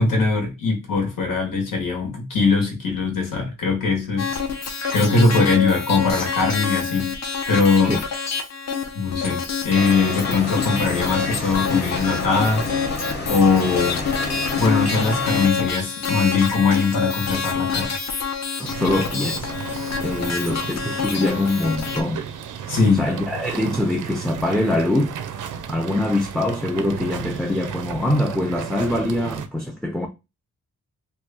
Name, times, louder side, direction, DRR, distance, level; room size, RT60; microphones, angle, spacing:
voice 1, 0.0-4.3 4.9-7.1 7.5-8.0 8.9-12.6 13.3-14.0 14.6-17.9 18.8-18.9 22.7-23.1, left 4 dB, 90° left, 1.2 m, -21 dB
sound 1, 4.2-22.0, left 5 dB, 55° left, 0.7 m, -27 dB
sound 2, 9.7-15.5, left 2 dB, 30° left, 1.0 m, -30 dB
voice 2, 18.6-19.6 20.0-22.2 22.9-25.2 25.7-30.1, left 1 dB, ahead, 0.4 m, -23 dB
sound 3, 18.6-29.5, right 8 dB, 70° right, 0.5 m, -34 dB
3.0 x 2.3 x 3.3 m
wide cardioid pair, 135°, 32 cm